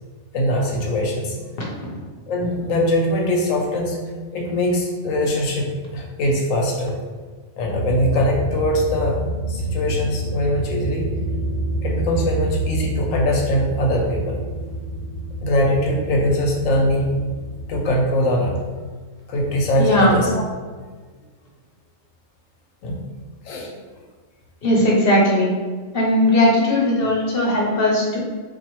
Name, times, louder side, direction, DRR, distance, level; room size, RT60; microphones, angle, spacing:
voice 1, 0.3-1.4 2.3-4.0 4.3-6.9 7.6-9.2 9.5-11.1 11.8-14.4 15.4-17.1 17.7-18.5 19.3-20.4 22.8-23.0 23.4-23.7, left 1 dB, 85° left, 0 dB, 1.1 m, -21 dB
sound 1, 7.7-18.0, right 1 dB, 65° right, 1.4 m, -27 dB
voice 2, 19.8-20.2 24.6-25.5 25.9-28.2, left 1 dB, 50° left, -3 dB, 0.9 m, -18 dB
4.1 x 2.5 x 3.0 m, 1.5 s
omnidirectional pair, 1.3 m